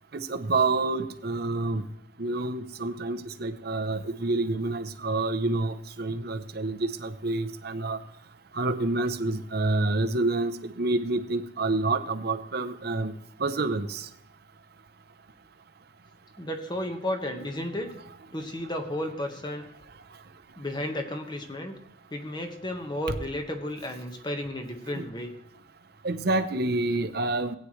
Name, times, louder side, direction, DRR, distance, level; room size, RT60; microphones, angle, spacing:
voice 1, 0.1-1.8 2.2-8.0 8.5-13.1 13.4-14.1 24.9-25.1 26.0-27.6, right 2 dB, 60° right, 8 dB, 0.8 m, -28 dB
voice 2, 16.4-17.9 18.3-19.7 20.6-21.7 22.1-25.3, left 1 dB, 25° left, 5 dB, 1.4 m, -33 dB
16.5 x 9.3 x 3.2 m, 0.78 s
head